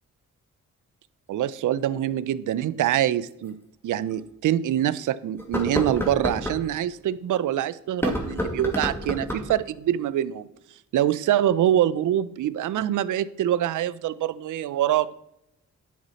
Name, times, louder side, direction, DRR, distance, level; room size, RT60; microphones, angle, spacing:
voice 1, 1.3-3.6 3.8-10.5 10.9-15.1, right 11 dB, 80° right, 17 dB, 0.5 m, -25 dB
Shaking Box, 3.4-3.5 4.1-4.2 5.4-6.6 7.9-9.6, left 1 dB, 10° left, 1.8 m, -29 dB
10.5 x 5.5 x 4.1 m, 0.84 s
cardioid pair, 70°, 30 cm